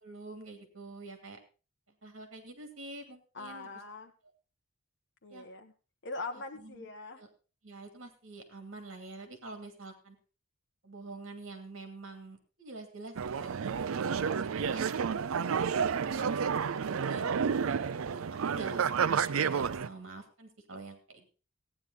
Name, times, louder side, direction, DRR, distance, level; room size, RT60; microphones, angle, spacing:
voice 1, 0.0-1.4 2.0-3.7 5.3-5.5 6.6-6.9 7.2-7.3 7.6-10.2 10.8-13.8 14.2-14.8 15.8-16.4 16.7-17.3 17.6-21.3, right 2 dB, 70° right, 6 dB, 2.6 m, -46 dB
voice 2, 3.3-4.1 5.2-5.7 6.0-7.2 17.8-18.1, left 3 dB, 60° left, 3 dB, 1.2 m, -42 dB
sound 1, 13.1-19.9, right 6 dB, 85° right, 0.5 m, -30 dB
14.5 x 9.7 x 3.9 m, 0.34 s
head